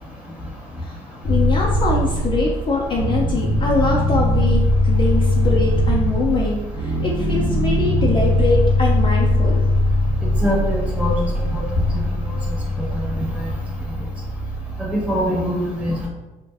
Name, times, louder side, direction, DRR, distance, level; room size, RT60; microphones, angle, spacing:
voice 1, 1.2-9.6, left 3 dB, 30° left, -3 dB, 0.4 m, -23 dB
sound 1, 1.2-15.3, left 1 dB, 90° right, 0.9 m, -20 dB
voice 2, 10.4-11.1 11.5-11.6 14.8-15.9, equal, 5° right, -4 dB, 0.8 m, -22 dB
2.5 x 2.1 x 3.3 m, 1.1 s
cardioid pair, 110°, 17 cm